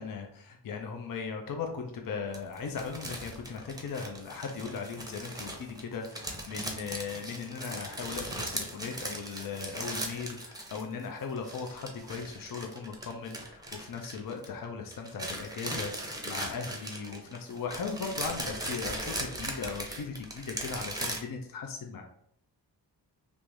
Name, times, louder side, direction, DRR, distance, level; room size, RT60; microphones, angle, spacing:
voice 1, 0.0-22.0, left 5 dB, 55° left, 3 dB, 0.5 m, -38 dB
sound 1, 2.3-11.0 11.3-14.7 14.9-21.2, right 1 dB, 10° right, 0.6 m, -39 dB
3.5 x 2.5 x 3.0 m, 0.69 s
wide cardioid pair, 90°, 42 cm